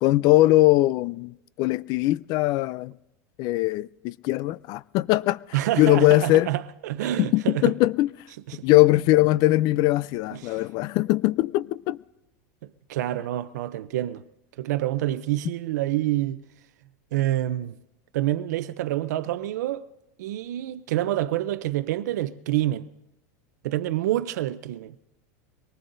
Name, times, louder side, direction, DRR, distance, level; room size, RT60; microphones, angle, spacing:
voice 1, 0.0-1.3 1.6-2.9 3.4-5.4 5.8-6.5 7.2-8.1 8.6-12.0, left 17 dB, 50° left, 0.4 m, -21 dB
voice 2, 5.5-7.7 8.5-8.7 10.3-10.6 12.6-14.2 14.6-16.4 17.1-17.7 18.1-19.8 20.2-22.9 23.6-25.0, right 14 dB, 85° right, 0.6 m, -27 dB
24.0 x 19.0 x 2.6 m
supercardioid pair, 130°, 9 cm